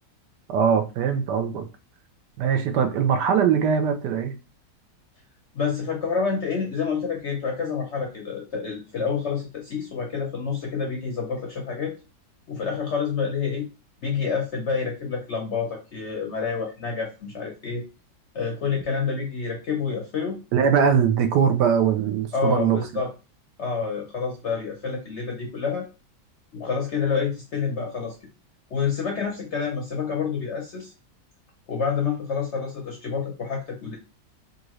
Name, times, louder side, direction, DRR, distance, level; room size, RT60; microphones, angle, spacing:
voice 1, 0.5-1.6 2.4-4.3 20.5-22.8, right 7 dB, 75° right, 1.2 m, -21 dB
voice 2, 5.5-11.9 12.5-13.7 14.0-17.8 18.3-20.4 22.3-23.1 23.6-25.8 26.5-28.1 28.7-30.9 31.7-34.0, left 5 dB, 60° left, 0.7 m, -28 dB
3.9 x 2.5 x 3.0 m
omnidirectional pair, 1.9 m